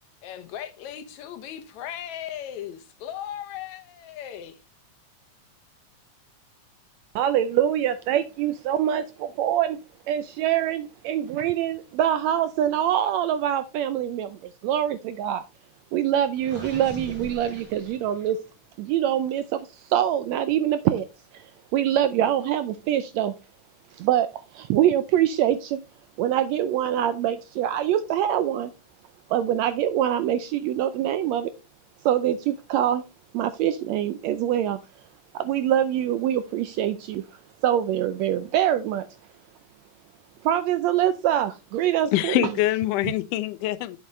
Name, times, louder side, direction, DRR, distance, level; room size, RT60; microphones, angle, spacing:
voice 1, 0.2-4.6, left 10 dB, 70° left, 2.0 m, -37 dB
voice 2, 7.1-9.8 10.1-15.4 15.9-18.4 18.8-21.1 21.3-21.5 21.7-23.3 23.9-25.8 26.2-28.7 29.3-31.5 32.0-33.0 33.3-34.8 35.3-37.2 37.6-39.1 40.4-42.5, right 11 dB, 80° right, 1.6 m, -24 dB
Gurgling, 16.4-18.5, right 2 dB, 45° right, 3.8 m, -41 dB
voice 3, 42.1-44.0, left 15 dB, 90° left, 2.1 m, -24 dB
8.5 x 7.3 x 3.1 m
omnidirectional pair, 3.6 m